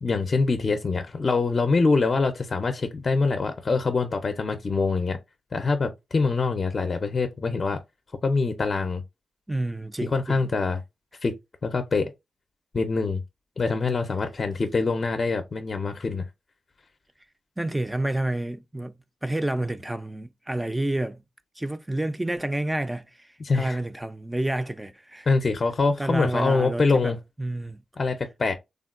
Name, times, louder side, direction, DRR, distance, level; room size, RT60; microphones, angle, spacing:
voice 1, 0.0-5.2 5.5-7.8 8.2-9.0 10.0-10.8 11.2-11.3 11.6-12.1 12.7-13.2 13.6-16.2 23.4-23.8 25.3-27.2 28.0-28.5, left 4 dB, 45° left, 0.5 m, -24 dB
voice 2, 9.5-10.5 17.6-21.2 21.6-25.3 26.0-27.8, right 1 dB, 10° right, 0.4 m, -29 dB
3.5 x 2.2 x 2.4 m
cardioid pair, 80°, 0 cm